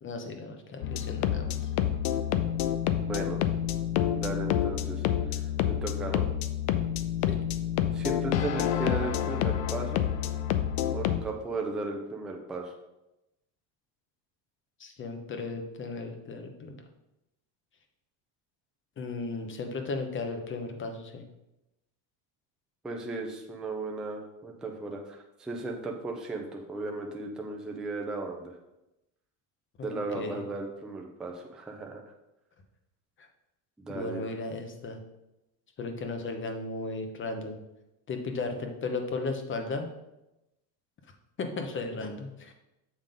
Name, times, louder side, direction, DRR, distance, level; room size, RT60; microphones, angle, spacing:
voice 1, 0.0-1.7 7.3-7.4 14.8-16.8 19.0-21.2 29.8-30.4 33.2-33.3 33.9-35.0 35.8-37.6 38.1-39.9 41.4-42.5, left 3 dB, 25° left, 5 dB, 0.8 m, -35 dB
sound 1, 0.8-11.2, left 10 dB, 85° left, 0.7 m, -28 dB
voice 2, 3.0-3.4 4.1-5.0 5.3-5.4 5.7-6.2 7.9-10.1 10.9-12.7 22.8-28.5 29.8-32.0 33.8-34.3 42.0-42.1, right 2 dB, ahead, 1 dB, 0.3 m, -35 dB
7.4 x 3.8 x 5.1 m, 0.92 s
cardioid pair, 150°, 50 cm